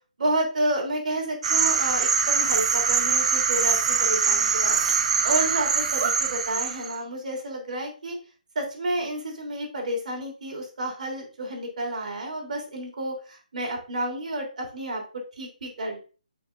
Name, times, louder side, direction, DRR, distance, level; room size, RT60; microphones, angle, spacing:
voice 1, 0.2-4.8 5.2-8.2 8.6-15.0 15.4-16.0, right 1 dB, 60° right, 1 dB, 3.3 m, -30 dB
sound 1, 1.4-6.9, right 6 dB, 45° right, 0.9 m, -23 dB
8.5 x 4.9 x 2.6 m, 0.35 s
hypercardioid pair, 160°, 5 cm